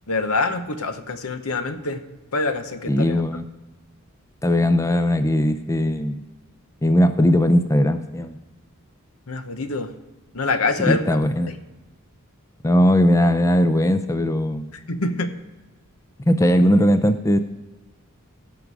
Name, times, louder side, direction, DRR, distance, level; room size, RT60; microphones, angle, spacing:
voice 1, 0.1-2.0 2.3-3.2 9.3-9.9 10.3-11.2 11.5-11.6 14.9-15.3, left 3 dB, 75° left, 9 dB, 1.0 m, -25 dB
voice 2, 2.9-3.5 4.4-6.2 6.8-8.4 10.8-11.5 12.6-14.8 16.3-17.4, equal, 15° left, 9 dB, 0.4 m, -19 dB
16.5 x 6.0 x 4.8 m, 1.1 s
head